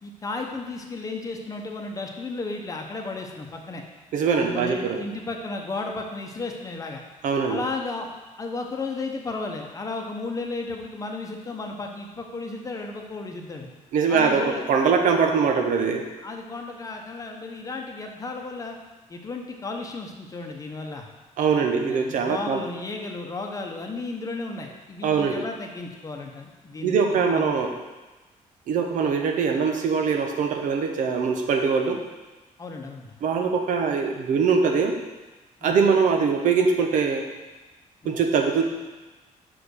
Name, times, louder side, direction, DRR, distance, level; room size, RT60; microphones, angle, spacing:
voice 1, 0.0-3.8 4.3-7.0 7.5-8.1 8.4-13.7 14.1-14.6 16.2-18.8 19.1-21.1 21.5-27.5 32.6-33.1 35.6-35.7 38.0-38.2, left 3 dB, 25° left, 2 dB, 0.9 m, -34 dB
voice 2, 4.1-5.0 7.2-7.6 13.9-16.1 21.4-22.6 25.0-25.4 26.8-27.8 28.7-32.0 33.2-35.0 35.6-37.3 38.0-38.6, right 5 dB, 70° right, 4 dB, 0.9 m, -22 dB
5.7 x 5.1 x 6.4 m, 1.2 s
cardioid pair, 150°, 14 cm